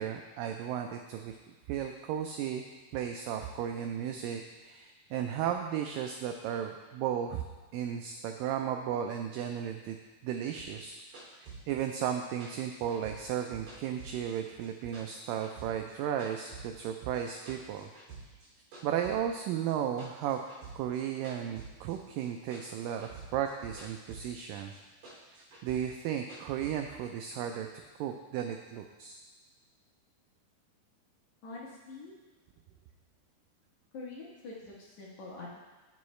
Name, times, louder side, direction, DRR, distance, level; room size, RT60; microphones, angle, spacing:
voice 1, 0.0-1.4 1.7-2.7 2.9-7.4 7.7-10.0 10.2-11.0 11.4-17.9 18.8-20.4 20.8-24.7 25.4-27.7 28.0-29.2, right 9 dB, 90° right, 4 dB, 1.9 m, -34 dB
sound 1, 10.6-14.7 14.9-16.9 17.1-18.5 18.7-22.3 22.5-24.5 24.7-26.7, right 4 dB, 50° right, 3.8 m, -49 dB
voice 2, 31.4-32.1 33.9-35.6, left 3 dB, 65° left, -4 dB, 2.1 m, -45 dB
16.0 x 5.4 x 3.2 m, 1.3 s
omnidirectional pair, 4.5 m